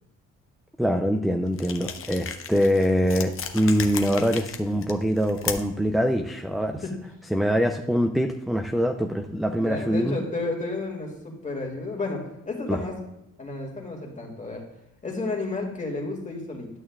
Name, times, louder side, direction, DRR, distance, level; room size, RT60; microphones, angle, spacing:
voice 1, 0.8-6.8 7.3-10.2 12.7-12.8, equal, ahead, 5 dB, 0.4 m, -24 dB
sound 1, 1.5-5.9, left 7 dB, 45° left, 0.8 m, -35 dB
voice 2, 9.5-12.9 13.4-14.6 15.0-16.7, left 3 dB, 25° left, 0 dB, 2.1 m, -32 dB
11.0 x 6.2 x 2.4 m, 0.88 s
cardioid pair, 90°, 30 cm